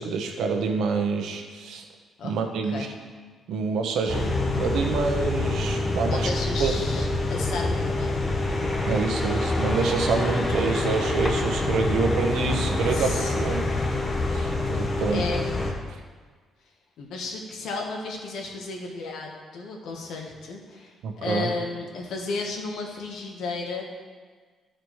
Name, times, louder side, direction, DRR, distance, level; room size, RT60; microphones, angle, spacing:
voice 1, 0.0-1.8 2.2-2.9 3.5-6.3 6.6-6.7 8.8-13.6 14.3-14.5 14.8-15.2 15.9-16.0 21.0-21.5, right 5 dB, 75° right, 4 dB, 1.1 m, -27 dB
sound 1, 4.1-15.7, left 2 dB, 25° left, 1.0 m, -26 dB
voice 2, 6.0-8.2 12.9-13.6 15.1-15.5 17.0-24.0, left 3 dB, 75° left, 1 dB, 1.5 m, -33 dB
12.0 x 5.0 x 4.7 m, 1.5 s
cardioid pair, 160°, 0 cm